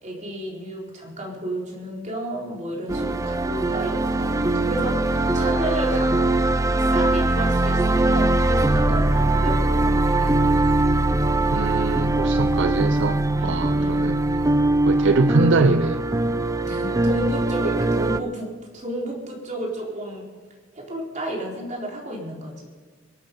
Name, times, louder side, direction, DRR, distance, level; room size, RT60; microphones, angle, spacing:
voice 1, 0.0-6.2 6.7-10.4 13.4-14.1 16.7-20.3 20.7-22.7, right 1 dB, 35° right, -2 dB, 4.1 m, -32 dB
sound 1, 2.9-18.2, right 2 dB, 15° right, 0.5 m, -21 dB
voice 2, 11.5-14.2 14.9-16.0, right 3 dB, 65° right, 12 dB, 0.5 m, -23 dB
24.0 x 9.0 x 5.4 m, 1.5 s
head